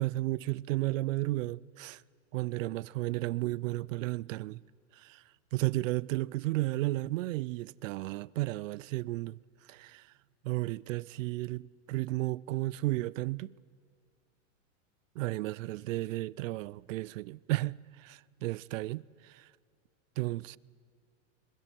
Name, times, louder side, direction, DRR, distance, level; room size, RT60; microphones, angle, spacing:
voice 1, 0.0-2.0 2.3-4.6 4.9-5.2 5.5-9.4 9.7-10.1 10.4-13.5 15.2-19.5 20.2-20.6, right 19 dB, 75° right, 0.5 m, -33 dB
26.0 x 23.0 x 4.5 m
supercardioid pair, 150°, 39 cm